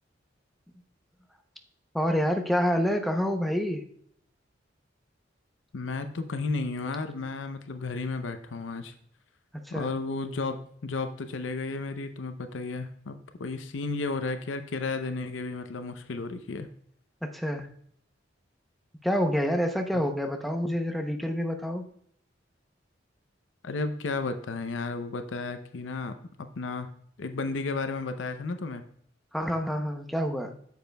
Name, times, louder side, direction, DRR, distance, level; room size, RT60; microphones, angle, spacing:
voice 1, 1.9-3.8 9.6-9.9 17.2-17.7 19.0-21.8 29.3-30.5, equal, ahead, 4 dB, 0.6 m, -27 dB
voice 2, 5.7-8.9 9.7-16.7 19.9-20.0 23.6-26.1 26.6-26.9 27.2-28.8, left 3 dB, 80° left, 9 dB, 0.6 m, -33 dB
9.2 x 7.1 x 2.2 m, 0.64 s
head